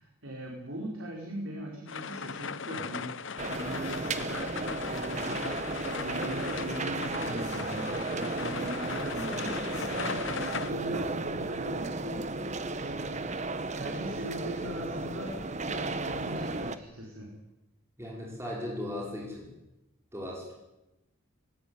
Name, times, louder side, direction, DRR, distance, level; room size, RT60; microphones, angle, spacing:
voice 1, 0.0-5.5 6.0-9.6 9.9-12.3 12.7-13.3 13.7-17.3, right 1 dB, 70° right, 0 dB, 4.7 m, -40 dB
sound 1, 1.9-10.7, left 5 dB, 60° left, 0.8 m, -38 dB
sound 2, 3.4-16.8, right 3 dB, 30° right, 1.1 m, -34 dB
voice 2, 18.0-19.5 20.1-20.5, left 1 dB, 10° right, -2 dB, 5.3 m, -37 dB
20.5 x 17.0 x 9.6 m, 0.97 s
head